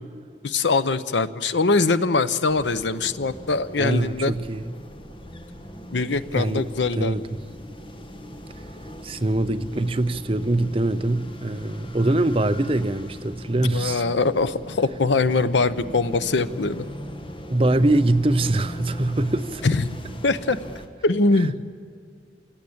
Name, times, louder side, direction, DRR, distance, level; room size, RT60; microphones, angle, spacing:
voice 1, 0.4-4.3 5.9-7.1 13.7-16.8 19.6-19.8 20.2-20.6 21.0-21.6, left 3 dB, 85° left, 0.8 m, -22 dB
sound 1, 2.5-20.9, equal, 30° left, 1.3 m, -39 dB
voice 2, 3.8-4.7 6.3-6.7 6.9-7.4 9.0-14.0 17.5-19.6 21.4-21.5, right 2 dB, 30° right, 0.6 m, -23 dB
28.0 x 17.0 x 8.7 m
head